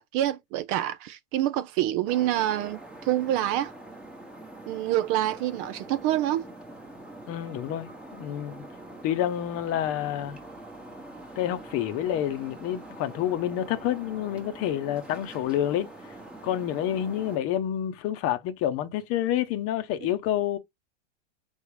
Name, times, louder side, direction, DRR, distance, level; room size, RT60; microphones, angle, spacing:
voice 1, 0.0-3.7 4.7-6.5, right 13 dB, 35° right, 0.4 m, -27 dB
sound 1, 2.1-17.4, right 1 dB, 5° right, 1.0 m, -44 dB
voice 2, 7.3-8.6 9.0-10.4 11.4-15.9 16.4-20.6, left 11 dB, 40° left, 0.8 m, -28 dB
4.0 x 3.6 x 3.2 m
hypercardioid pair, 100°, 37 cm